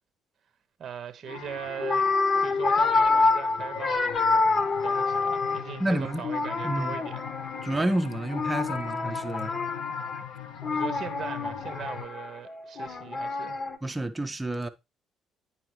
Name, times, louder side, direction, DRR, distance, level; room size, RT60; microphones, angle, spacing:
voice 1, 0.8-2.1 2.4-7.3 10.7-13.6, right 8 dB, 45° right, 0.8 m, -40 dB
sound 1, 1.3-12.1, left 8 dB, 65° left, 0.9 m, -42 dB
sound 2, 1.3-1.5 1.8-5.8 6.2-7.9 8.3-13.8, left 3 dB, 40° left, 1.1 m, -27 dB
voice 2, 5.8-6.2 6.6-6.9 7.6-9.5 13.8-14.7, right 1 dB, 15° right, 0.8 m, -29 dB
9.6 x 5.6 x 3.1 m
figure-of-eight pair, 50°, 0 cm